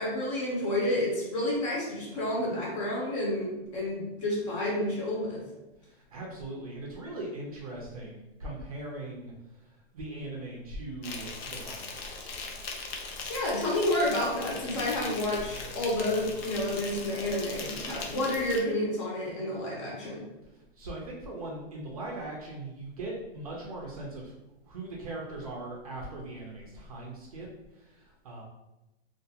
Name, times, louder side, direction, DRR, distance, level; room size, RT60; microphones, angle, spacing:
voice 1, 0.0-5.4 13.3-20.3, left 1 dB, 30° left, -4 dB, 0.7 m, -30 dB
voice 2, 5.8-12.6 20.5-24.3 24.6-27.5 27.7-28.4, right 2 dB, 35° right, -2 dB, 0.5 m, -40 dB
Insect, 11.0-18.6, left 4 dB, 75° left, 0.7 m, -39 dB
2.4 x 2.4 x 2.7 m, 0.95 s
hypercardioid pair, 170°, 31 cm